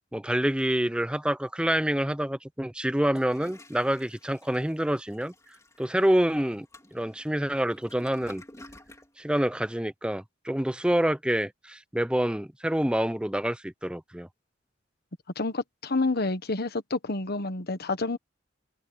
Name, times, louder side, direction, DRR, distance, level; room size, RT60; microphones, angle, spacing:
voice 1, 0.1-5.3 5.8-6.7 6.9-8.4 9.2-14.3, right 1 dB, 5° right, 0.6 m, -27 dB
Toilet flush, 2.9-9.1, left 1 dB, 15° left, 3.5 m, -52 dB
voice 2, 15.4-18.2, left 3 dB, 55° left, 1.4 m, -29 dB
head